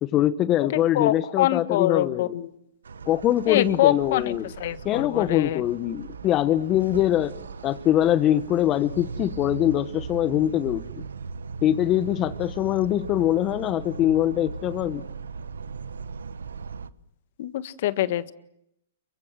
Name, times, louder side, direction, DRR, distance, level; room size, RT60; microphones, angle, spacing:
voice 1, 0.0-2.3 3.1-4.5 4.8-7.4 7.6-10.8 11.6-15.0, left 12 dB, 30° left, 12 dB, 1.2 m, -23 dB
voice 2, 0.9-2.5 3.5-4.3 4.6-5.6 17.4-18.3, left 13 dB, 60° left, 12 dB, 1.6 m, -24 dB
sound 1, 2.8-16.9, right 5 dB, 85° right, 1.2 m, -38 dB
29.0 x 24.0 x 7.5 m, 0.77 s
hypercardioid pair, 125°, 0 cm